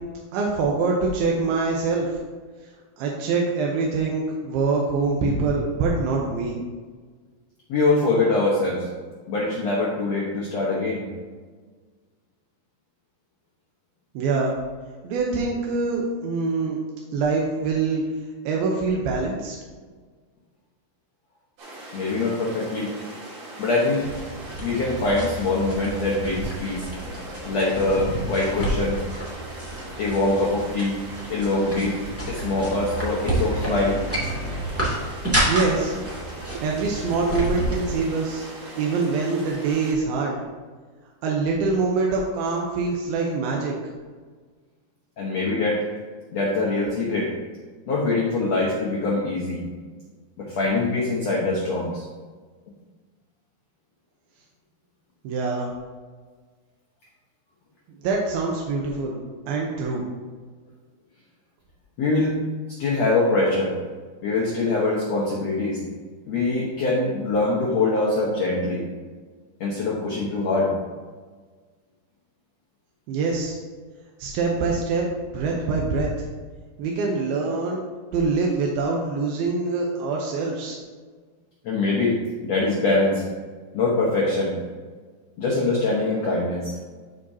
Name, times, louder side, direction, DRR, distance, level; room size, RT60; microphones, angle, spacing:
voice 1, 0.3-2.1 3.0-6.6 14.2-14.6 15.0-16.8 17.1-18.0 18.5-19.6 35.5-35.9 36.6-38.5 38.8-40.4 41.2-43.7 55.2-55.7 58.0-59.2 59.5-60.0 73.1-73.6 74.2-76.1 76.8-77.8 78.1-80.8, right 4 dB, 75° right, -1 dB, 2.4 m, -24 dB
voice 2, 7.7-8.9 9.3-11.0 21.9-22.9 23.6-24.0 24.6-26.9 27.4-29.0 30.0-31.0 31.3-32.0 32.3-34.0 45.2-45.8 46.3-47.3 47.9-49.6 50.4-52.0 62.0-62.3 62.8-63.7 64.2-65.8 66.3-68.8 69.6-70.7 81.6-82.2 82.4-83.2 83.7-84.5 85.4-86.7, left 2 dB, 75° left, -4 dB, 1.5 m, -23 dB
sound 1, 21.6-39.9, right 1 dB, 60° right, 3.7 m, -40 dB
sound 2, 24.0-38.0, right 1 dB, 10° right, 0.9 m, -30 dB
13.5 x 5.1 x 2.8 m, 1.5 s
omnidirectional pair, 5.0 m